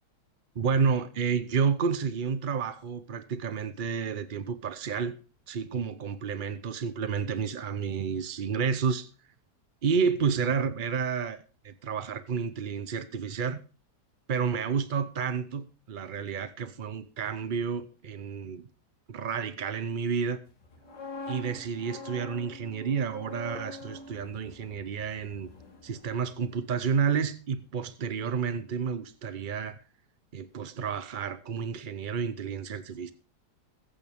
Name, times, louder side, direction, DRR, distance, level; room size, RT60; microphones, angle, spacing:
voice 1, 0.6-5.1 5.5-9.1 9.8-13.6 14.3-18.7 19.1-20.4 21.3-25.5 25.8-29.8 30.3-33.1, right 6 dB, 55° right, 0.5 m, -30 dB
sound 1, 20.6-26.6 26.8-27.1, left 3 dB, 90° left, 3.1 m, -44 dB
21.5 x 8.5 x 3.5 m
omnidirectional pair, 1.8 m